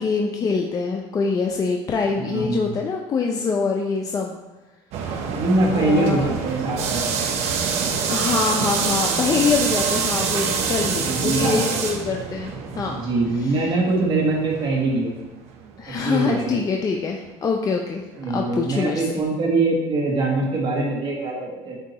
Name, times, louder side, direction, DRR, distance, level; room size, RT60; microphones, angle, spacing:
voice 1, 0.0-4.4 5.7-6.3 8.1-13.0 13.4-13.7 15.8-19.0, left 5 dB, 30° left, 1 dB, 0.5 m, -24 dB
voice 2, 2.2-2.7 5.3-7.2 11.0-11.8 12.9-15.1 15.9-16.6 18.2-21.8, right 2 dB, 45° right, -3 dB, 1.5 m, -23 dB
sound 1, 4.9-15.8 16.1-16.2 16.9-17.0 18.5-18.6, right 6 dB, 65° right, 0.8 m, -26 dB
8.2 x 2.8 x 4.0 m, 1.1 s
cardioid pair, 120°, 12 cm